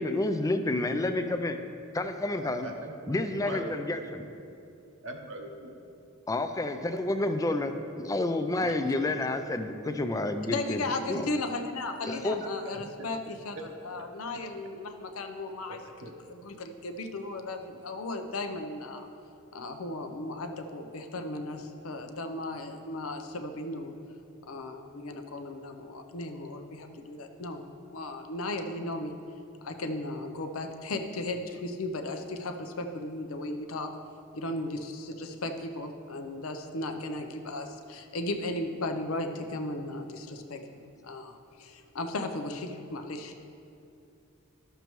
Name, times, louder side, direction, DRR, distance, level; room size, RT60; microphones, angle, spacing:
voice 1, 0.0-1.6 1.9-2.7 3.1-4.2 6.3-10.8 11.1-11.3 12.0-12.4, left 2 dB, 15° left, 8 dB, 0.4 m, -29 dB
voice 2, 2.3-3.2 3.4-3.7 5.0-5.8 7.9-8.0 8.6-8.7 12.1-12.2 12.6-12.8 15.7-16.2, right 1 dB, 65° right, 3 dB, 0.8 m, -41 dB
voice 3, 10.4-13.6 13.8-15.8 16.3-19.1 19.5-23.9 24.5-27.6 27.9-29.1 29.6-33.9 34.3-43.4, left 2 dB, 80° left, 5 dB, 0.7 m, -36 dB
12.0 x 6.7 x 3.1 m, 2.6 s
head